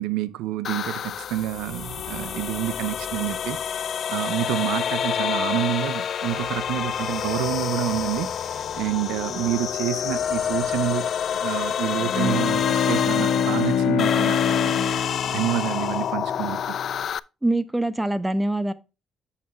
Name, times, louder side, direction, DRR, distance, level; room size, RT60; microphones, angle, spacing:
voice 1, 0.0-14.7 15.3-16.8, right 14 dB, 90° right, 0.6 m, -28 dB
sound 1, 0.6-17.2, left 8 dB, 60° left, 0.3 m, -28 dB
Bowed string instrument, 12.0-16.6, left 7 dB, 80° left, 1.0 m, -25 dB
voice 2, 17.4-18.7, right 1 dB, 10° right, 0.9 m, -24 dB
8.2 x 6.7 x 3.1 m
cardioid pair, 75°, 0 cm